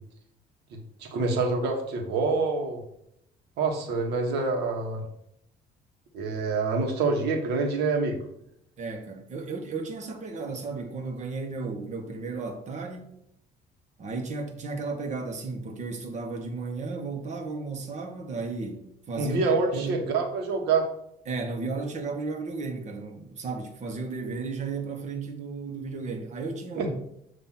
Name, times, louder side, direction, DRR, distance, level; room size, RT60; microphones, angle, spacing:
voice 1, 0.7-2.8 3.6-5.1 6.1-8.2 19.2-20.9 26.8-26.9, right 3 dB, 80° right, 1.5 m, -26 dB
voice 2, 8.8-13.1 14.0-20.1 21.2-26.9, right 4 dB, 45° right, 1.4 m, -34 dB
7.6 x 3.0 x 5.8 m
cardioid pair, 110°, 17 cm